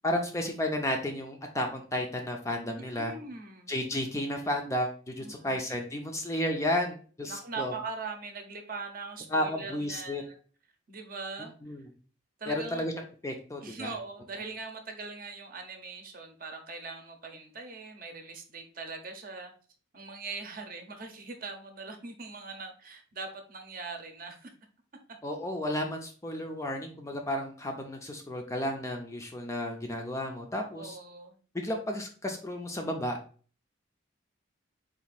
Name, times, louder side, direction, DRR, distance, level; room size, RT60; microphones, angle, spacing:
voice 1, 0.0-3.1 3.7-7.7 9.3-10.2 11.6-11.8 12.5-12.9 13.2-13.9 25.2-31.0 31.5-33.2, left 1 dB, 15° left, 3 dB, 0.4 m, -32 dB
voice 2, 2.8-3.7 5.2-5.7 7.3-10.4 10.9-11.5 12.4-12.9 13.6-19.5 19.9-24.5 30.7-31.4, right 4 dB, 45° right, 5 dB, 0.7 m, -41 dB
4.1 x 2.6 x 4.1 m, 0.41 s
head